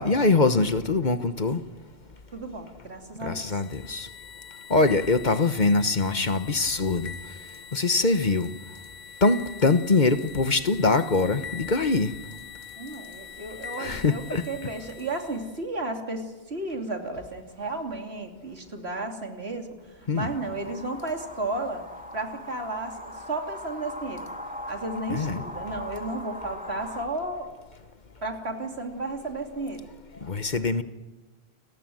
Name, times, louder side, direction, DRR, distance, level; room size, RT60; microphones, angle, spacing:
voice 1, 0.0-1.6 3.2-4.1 4.7-7.1 7.7-8.5 9.2-12.1 13.8-14.4 20.1-20.3 25.1-25.4 30.2-30.8, left 3 dB, 45° left, 1.3 m, -23 dB
voice 2, 2.3-3.6 12.8-21.8 22.1-24.3 24.7-27.5 28.2-29.9, right 2 dB, 75° right, 3.1 m, -33 dB
sound 1, 3.5-15.6, left 7 dB, 80° left, 1.4 m, -43 dB
sound 2, 20.2-27.0, left 1 dB, 5° right, 2.5 m, -40 dB
29.5 x 20.5 x 7.8 m
omnidirectional pair, 1.1 m